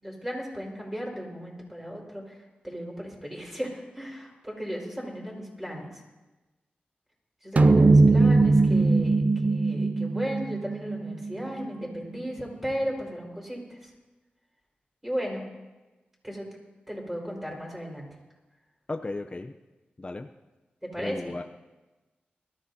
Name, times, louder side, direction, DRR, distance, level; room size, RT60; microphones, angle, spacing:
voice 1, 0.0-6.0 7.4-13.9 15.0-15.4 16.2-16.5 16.9-18.1 20.8-21.4, equal, 10° right, -2 dB, 4.7 m, -35 dB
sound 1, 7.6-12.2, right 3 dB, 45° right, 0.4 m, -21 dB
voice 2, 18.9-19.5 20.0-20.3 21.0-21.4, left 2 dB, 30° left, 5 dB, 0.6 m, -35 dB
22.0 x 14.0 x 2.8 m, 1.1 s
wide cardioid pair, 75°, 3 cm